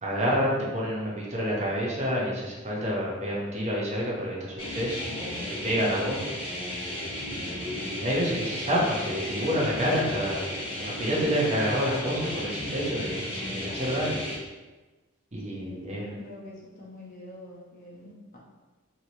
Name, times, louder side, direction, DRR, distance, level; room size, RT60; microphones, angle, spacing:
voice 1, 0.0-6.3 7.3-10.4 10.8-14.2 15.3-16.1, equal, 35° right, -4 dB, 0.7 m, -28 dB
sound 1, 4.6-14.4, left 1 dB, 55° left, 1.4 m, -34 dB
voice 2, 15.5-18.4, left 1 dB, 40° left, -5 dB, 0.8 m, -45 dB
3.0 x 2.8 x 2.7 m, 1.2 s
head